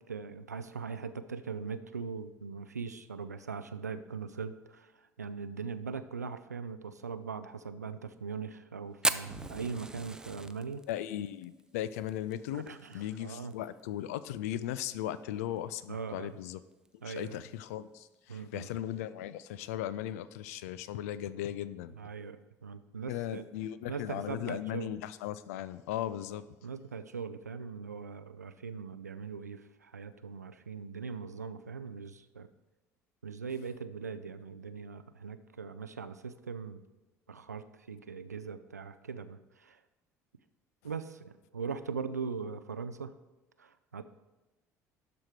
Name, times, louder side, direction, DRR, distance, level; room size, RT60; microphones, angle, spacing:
voice 1, 0.0-10.8 12.5-13.5 15.9-16.4 17.0-17.4 18.3-18.7 22.0-23.5 23.9-24.9 26.6-32.5 33.2-36.8 37.3-39.8 40.8-43.1 43.6-44.0, right 5 dB, 85° right, 12 dB, 0.3 m, -40 dB
Fire, 9.0-13.5 13.8-13.9 14.1-14.2 14.6-15.0 15.6-15.7 16.7-16.9, right 2 dB, 10° right, 0.4 m, -36 dB
voice 2, 10.9-12.7 12.9-16.6 17.0-21.9 23.1-26.4, left 12 dB, 65° left, 16 dB, 0.4 m, -37 dB
12.0 x 4.3 x 4.7 m, 1.1 s
figure-of-eight pair, 55°, 9 cm